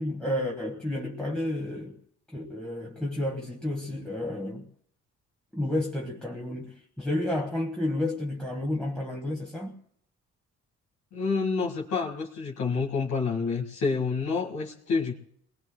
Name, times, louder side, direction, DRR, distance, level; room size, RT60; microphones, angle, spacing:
voice 1, 0.0-2.0 2.3-4.7 5.5-9.7, left 1 dB, 5° left, 1.3 m, -31 dB
voice 2, 11.1-15.1, left 4 dB, 75° left, 1.9 m, -28 dB
29.5 x 20.0 x 2.2 m
cardioid pair, 90°, 30 cm